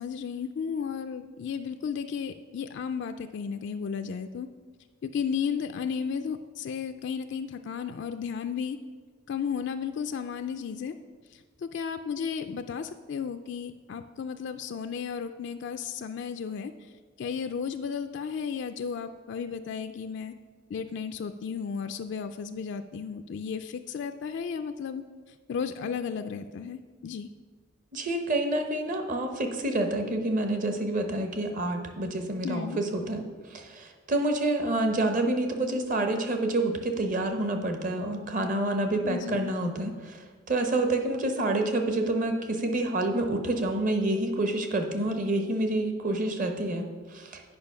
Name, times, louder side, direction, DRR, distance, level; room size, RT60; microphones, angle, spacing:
voice 1, 0.0-4.5 5.0-8.8 9.3-10.9 11.6-16.7 17.2-20.3 20.7-25.0 25.5-27.3 32.4-32.8 39.0-39.5, left 6 dB, 60° left, 8 dB, 0.3 m, -34 dB
voice 2, 27.9-33.2 33.5-47.4, right 2 dB, 40° right, 5 dB, 0.9 m, -28 dB
8.8 x 5.3 x 5.5 m, 1.5 s
head